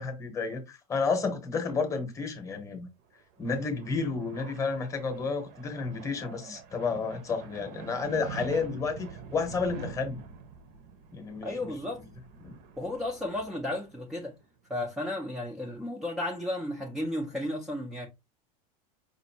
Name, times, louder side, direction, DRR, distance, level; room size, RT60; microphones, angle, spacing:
voice 1, 0.0-2.9 3.4-10.2 11.1-11.7, left 4 dB, 15° left, 0.9 m, -31 dB
sound 1, 3.2-14.5, right 6 dB, 50° right, 0.8 m, -46 dB
voice 2, 11.4-12.0 12.8-14.3 14.7-18.1, left 1 dB, ahead, 0.5 m, -34 dB
5.1 x 2.6 x 2.7 m
supercardioid pair, 155°, 20 cm